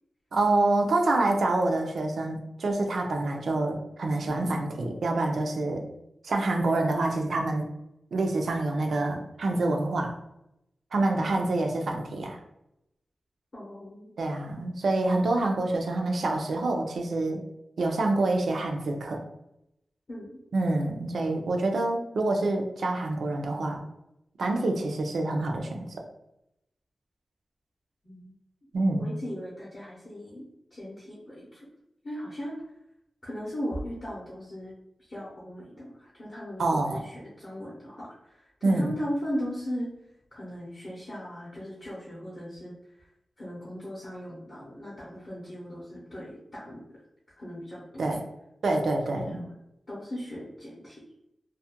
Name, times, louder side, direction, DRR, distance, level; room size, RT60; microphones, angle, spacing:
voice 1, 0.3-5.8 6.2-7.7 8.1-10.2 10.9-12.4 14.2-17.4 17.8-19.2 20.5-23.8 24.4-26.0 28.7-29.2 36.6-37.0 38.6-39.0 48.0-48.2 48.6-49.4, right 2 dB, 70° right, 2 dB, 0.4 m, -27 dB
voice 2, 13.5-14.1 20.1-20.3 28.0-28.3 29.0-30.4 30.7-31.7 32.0-32.6 33.2-34.7 35.1-39.9 40.3-42.7 43.4-47.0 47.4-48.2 49.2-49.5 49.9-51.0, equal, 35° left, -7 dB, 0.6 m, -38 dB
2.3 x 2.1 x 2.8 m, 0.83 s
wide cardioid pair, 180°, 0 cm